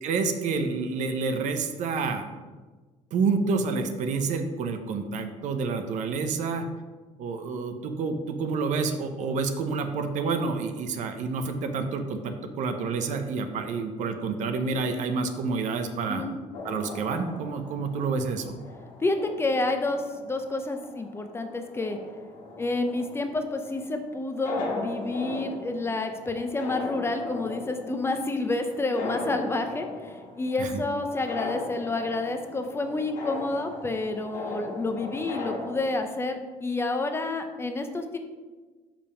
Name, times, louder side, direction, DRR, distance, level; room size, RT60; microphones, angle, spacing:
voice 1, 0.0-2.3 3.1-6.7 7.2-16.2 16.6-18.6 30.6-30.8, right 4 dB, 70° right, 7 dB, 0.7 m, -28 dB
sound 1, 16.5-35.9, left 3 dB, 75° left, 1.5 m, -38 dB
voice 2, 19.0-22.0 22.6-38.2, left 2 dB, 20° left, 6 dB, 0.6 m, -29 dB
5.3 x 5.0 x 5.0 m, 1.3 s
cardioid pair, 120°, 13 cm